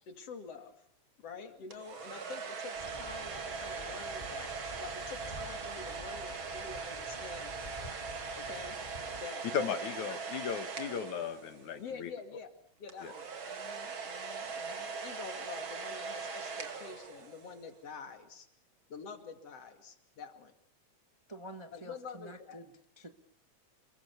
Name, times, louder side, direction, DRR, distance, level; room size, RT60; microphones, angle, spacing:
voice 1, 0.1-0.7 1.2-4.5 4.8-7.6 8.4-8.8 9.2-10.2 11.8-12.5 12.8-18.5 18.9-20.5 21.7-22.6, left 5 dB, 55° left, 7 dB, 3.4 m, -47 dB
sound 1, 1.7-11.8 12.9-17.6, right 5 dB, 45° right, 2.7 m, -41 dB
sound 2, 2.8-9.3, left 1 dB, 15° left, 2.4 m, -49 dB
voice 2, 9.5-12.1 13.0-13.1, left 7 dB, 75° left, 9 dB, 3.1 m, -36 dB
voice 3, 21.3-23.1, right 1 dB, 25° right, 7 dB, 0.6 m, -48 dB
28.5 x 21.5 x 7.0 m, 0.66 s
omnidirectional pair, 3.4 m